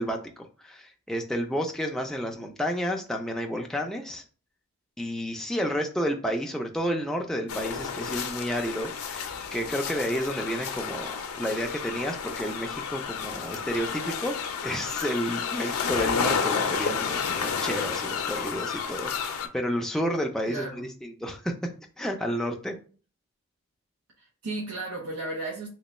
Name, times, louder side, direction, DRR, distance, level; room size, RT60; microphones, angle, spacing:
voice 1, 0.0-4.2 5.0-14.4 14.6-21.7 22.0-22.8, equal, ahead, 1 dB, 0.3 m, -31 dB
sound 1, 7.5-19.5, left 6 dB, 85° left, 0.5 m, -31 dB
voice 2, 20.5-20.8 24.2-25.7, right 2 dB, 85° right, -3 dB, 0.8 m, -34 dB
3.0 x 2.2 x 4.1 m, 0.38 s
head